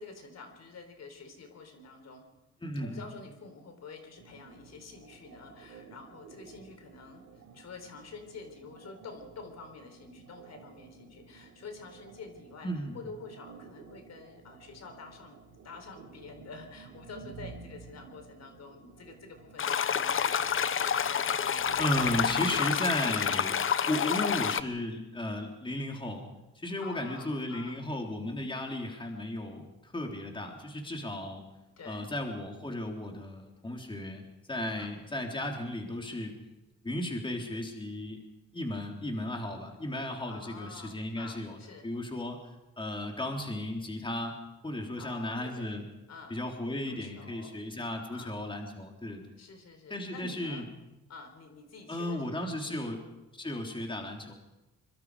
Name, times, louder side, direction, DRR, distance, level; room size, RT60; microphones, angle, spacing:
voice 1, 0.0-2.3 2.7-12.7 12.9-15.4 15.6-20.6 23.8-24.1 26.8-27.9 31.8-32.1 34.7-34.9 40.3-41.9 45.0-45.8 46.1-46.4 46.9-47.6 48.1-48.5 49.4-50.7 51.1-53.0, left 4 dB, 60° left, 6 dB, 4.2 m, -48 dB
voice 2, 2.6-3.0 12.6-13.0 21.8-23.6 23.9-26.2 26.6-31.4 31.9-36.3 36.8-38.2 38.5-41.6 41.8-42.4 42.8-44.3 44.6-45.9 46.3-49.2 49.9-50.6 51.9-53.0 53.3-54.3, left 1 dB, 15° left, 2 dB, 3.5 m, -35 dB
sound 1, 4.2-22.6, right 5 dB, 85° right, 5.3 m, -52 dB
sound 2, 19.6-24.6, left 8 dB, 45° left, 1.0 m, -28 dB
24.5 x 23.0 x 4.9 m, 1.0 s
cardioid pair, 90°, 30 cm